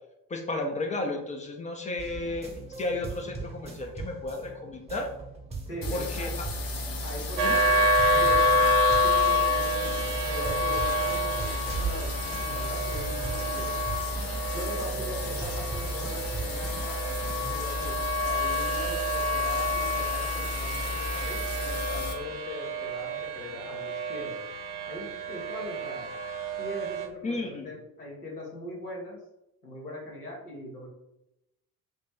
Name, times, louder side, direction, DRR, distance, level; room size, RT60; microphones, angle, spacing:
voice 1, 0.3-2.5 2.8-5.1 5.9-6.5 7.4-7.6 27.2-27.7, left 2 dB, 20° left, 3 dB, 0.3 m, -33 dB
sound 1, 2.0-17.6, right 3 dB, 15° right, 0.8 m, -40 dB
voice 2, 5.7-6.3 7.0-13.7 14.5-17.1 17.5-24.4 24.9-26.1 26.6-29.2 29.6-30.9, left 1 dB, 90° left, -4 dB, 0.8 m, -41 dB
sound 2, 5.8-22.1, left 1 dB, 50° left, 0.8 m, -34 dB
sound 3, 7.4-27.1, left 1 dB, 75° right, 0.6 m, -28 dB
2.9 x 2.8 x 3.3 m, 0.88 s
figure-of-eight pair, 50°, 45 cm